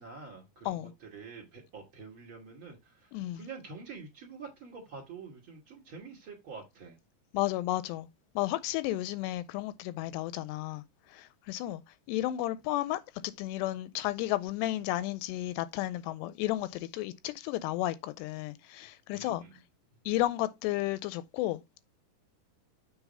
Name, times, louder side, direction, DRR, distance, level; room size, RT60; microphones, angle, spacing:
voice 1, 0.0-7.0 19.1-19.5, right 4 dB, 35° right, 2.6 m, -47 dB
voice 2, 3.1-3.4 7.3-8.1 8.4-10.8 11.1-11.8 12.1-19.4 20.1-21.8, left 15 dB, 85° left, 2.7 m, -33 dB
7.1 x 3.9 x 5.5 m
omnidirectional pair, 4.8 m